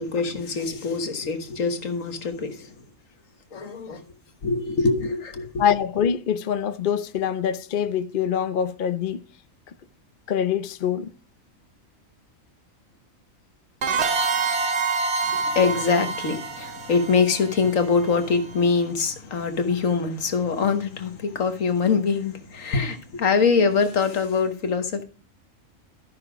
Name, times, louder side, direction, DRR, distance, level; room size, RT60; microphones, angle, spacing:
voice 1, 0.0-2.9 3.5-4.0 4.4-5.6 15.2-25.0, left 5 dB, 75° left, 1.7 m, -24 dB
voice 2, 5.6-9.2 10.3-11.1, left 8 dB, 50° left, 0.7 m, -24 dB
sound 1, 13.8-18.3, right 4 dB, 55° right, 1.1 m, -26 dB
12.5 x 5.7 x 5.0 m
omnidirectional pair, 1.4 m